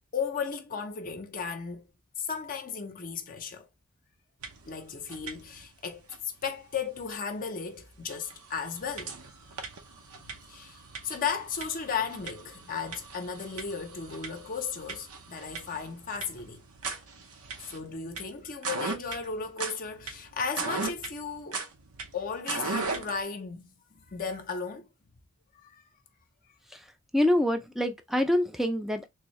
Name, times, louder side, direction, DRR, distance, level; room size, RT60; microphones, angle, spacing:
voice 1, 0.1-1.8 2.2-3.7 4.7-9.2 10.5-16.6 17.6-21.7 22.1-24.9 25.5-25.8, left 6 dB, 40° left, 0.6 m, -35 dB
sound 1, 4.4-4.8 5.0-5.7 6.1-6.2 7.1-7.2 7.7-7.8 8.1-23.2, right 4 dB, 90° right, 0.8 m, -39 dB
voice 2, 27.1-29.1, left 1 dB, ahead, 0.5 m, -25 dB
3.5 x 2.7 x 3.1 m
head